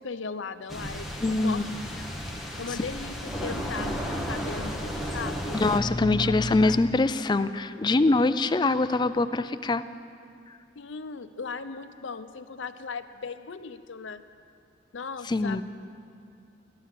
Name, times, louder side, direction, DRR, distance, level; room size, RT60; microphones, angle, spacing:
voice 1, 0.0-2.0 2.6-5.6 6.2-6.3 6.6-6.8 10.8-14.2 14.9-15.6, left 5 dB, 70° left, 11 dB, 0.6 m, -38 dB
sound 1, 0.7-5.8, equal, ahead, 1.2 m, -33 dB
voice 2, 1.2-1.6 2.7-2.8 5.5-9.8 10.5-10.6 15.2-15.6, left 2 dB, 20° left, 12 dB, 0.3 m, -24 dB
15.0 x 11.5 x 7.7 m, 2.4 s
head